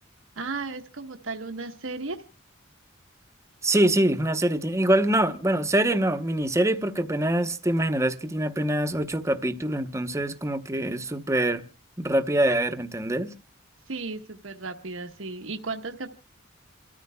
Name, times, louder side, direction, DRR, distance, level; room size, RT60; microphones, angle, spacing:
voice 1, 0.4-2.2 13.9-16.1, right 3 dB, 80° right, 1.1 m, -35 dB
voice 2, 3.6-11.6 12.0-13.3, right 1 dB, 15° right, 0.8 m, -24 dB
28.5 x 13.5 x 2.2 m
head